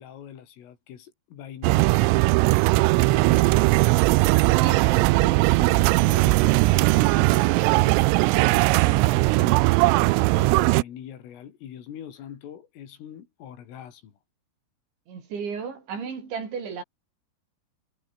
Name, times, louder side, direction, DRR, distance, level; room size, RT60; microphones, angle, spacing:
voice 1, 0.0-2.4 3.0-3.8 4.4-4.8 5.1-9.8 10.4-14.1, left 9 dB, 75° left, 5.7 m, -42 dB
sound 1, 1.6-10.8, right 23 dB, 85° right, 3.2 m, -19 dB
voice 2, 4.6-5.1 15.1-16.8, right 6 dB, 60° right, 7.9 m, -34 dB
omnidirectional pair, 5.9 m